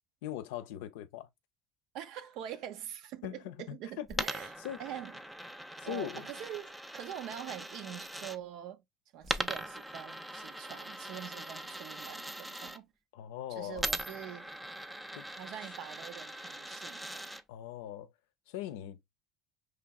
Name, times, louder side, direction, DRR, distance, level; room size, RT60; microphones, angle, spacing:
voice 1, 0.2-1.3 3.2-4.3 4.6-4.8 5.8-6.3 13.1-13.8 15.2-15.3 17.5-18.1 18.5-19.0, left 12 dB, 80° left, 0.5 m, -40 dB
voice 2, 1.9-5.2 5.8-8.8 9.1-12.9 13.5-14.5 15.3-17.4, right 11 dB, 65° right, 0.7 m, -44 dB
Coin (dropping), 4.1-8.4 9.2-12.8 13.8-17.4, right 1 dB, 5° right, 0.4 m, -40 dB
4.7 x 3.3 x 2.3 m
supercardioid pair, 105°, 0 cm